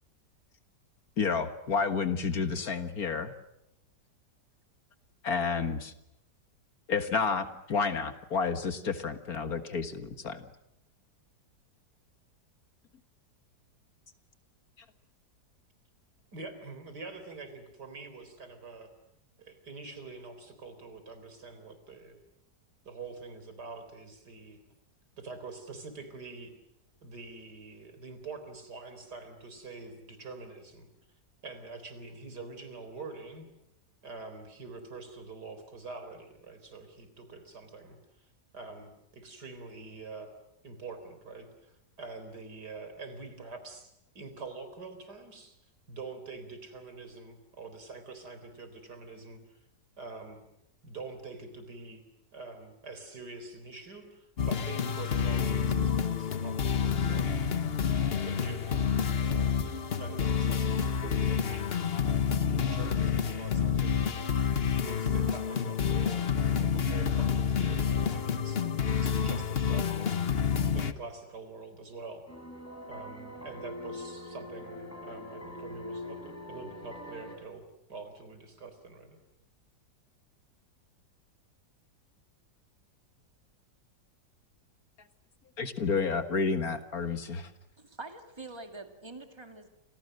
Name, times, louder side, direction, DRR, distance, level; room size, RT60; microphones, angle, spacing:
voice 1, 1.2-3.3 5.2-5.9 6.9-10.5 85.6-87.5, left 5 dB, 55° left, 9 dB, 2.0 m, -30 dB
voice 2, 16.3-18.9 19.4-22.2 22.8-24.6 25.2-26.5 27.0-30.9 31.4-33.5 34.0-40.3 40.6-45.6 45.9-49.7 50.0-50.4 50.8-52.0 52.3-57.4 58.2-64.5 64.8-66.3 66.6-72.2 72.9-79.2, right 3 dB, 70° right, 9 dB, 4.6 m, -45 dB
sound 1, 54.4-70.9, left 7 dB, 40° left, 1.2 m, -28 dB
sound 2, 72.3-77.4, left 1 dB, 10° left, 4.7 m, -43 dB
voice 3, 87.8-89.7, right 3 dB, 15° right, 6 dB, 2.4 m, -45 dB
30.0 x 27.5 x 6.6 m, 0.83 s
omnidirectional pair, 1.9 m